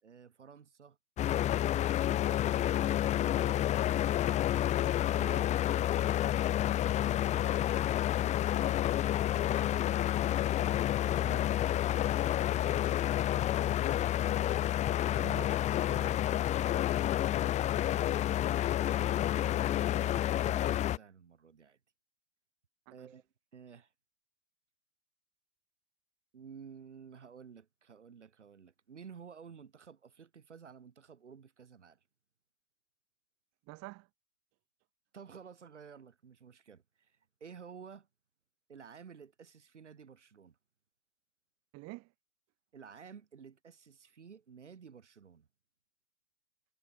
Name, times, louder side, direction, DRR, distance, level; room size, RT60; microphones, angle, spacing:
voice 1, 0.0-1.0 2.1-3.6 4.8-5.3 9.4-10.4 14.5-15.3 16.0-18.2 18.9-21.8 22.9-23.9 26.3-32.0 35.1-38.1 38.7-40.6 42.7-45.5, right 6 dB, 85° right, 3.9 m, -53 dB
sound 1, 1.2-21.0, left 12 dB, 20° left, 0.4 m, -29 dB
voice 2, 5.1-5.6 8.5-8.8 11.2-11.5 15.1-16.2 22.9-23.1 33.7-34.1 41.7-42.1, right 25 dB, 45° right, 3.1 m, -48 dB
hypercardioid pair, 95°, 34 cm